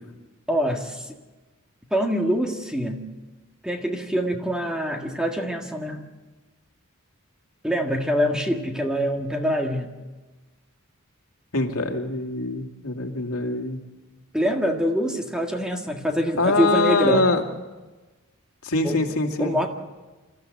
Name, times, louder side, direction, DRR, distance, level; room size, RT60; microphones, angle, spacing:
voice 1, 0.5-1.2 1.9-3.1 3.6-6.0 7.6-9.9 14.3-17.2 18.8-19.0 19.4-19.7, equal, 5° right, 2 dB, 1.8 m, -24 dB
voice 2, 11.5-13.8 16.4-17.4 18.6-19.6, left 2 dB, 80° left, 3 dB, 2.5 m, -23 dB
27.0 x 14.0 x 7.9 m, 1.2 s
head